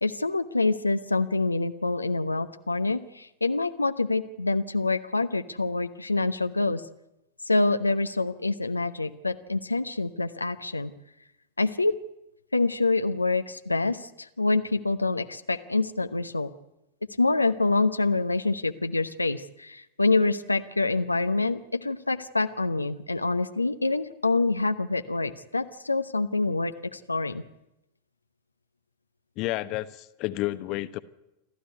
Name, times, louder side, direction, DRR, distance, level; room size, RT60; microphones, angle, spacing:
voice 1, 0.0-6.8 7.5-10.9 11.6-11.9 12.5-16.5 17.2-27.4, left 3 dB, 80° left, 9 dB, 0.8 m, -26 dB
voice 2, 29.4-31.0, left 17 dB, 40° left, 13 dB, 1.0 m, -30 dB
28.0 x 13.0 x 9.5 m, 0.89 s
figure-of-eight pair, 90°, 0 cm